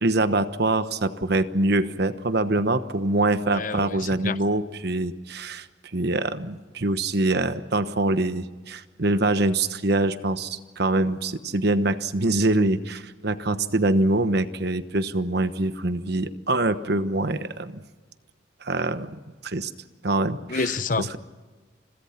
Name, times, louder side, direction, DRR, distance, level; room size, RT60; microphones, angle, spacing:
voice 1, 0.0-5.7 5.9-17.8 18.6-19.7 20.0-20.6, right 2 dB, 55° right, 1.2 m, -24 dB
voice 2, 3.5-4.4 20.5-21.2, left 4 dB, 45° left, 0.8 m, -28 dB
29.0 x 22.5 x 6.0 m
head